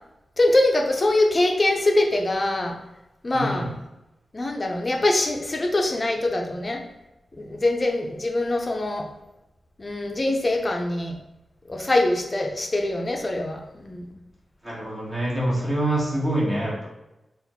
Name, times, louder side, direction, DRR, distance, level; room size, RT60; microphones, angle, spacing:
voice 1, 0.4-2.8 3.2-3.8 4.3-6.8 7.4-9.1 9.8-11.2 11.7-14.1, left 2 dB, 30° left, 2 dB, 0.6 m, -23 dB
voice 2, 3.3-3.7 14.6-16.9, right 1 dB, 25° right, -5 dB, 1.1 m, -25 dB
4.0 x 2.5 x 4.3 m, 0.96 s
wide cardioid pair, 140°, 0 cm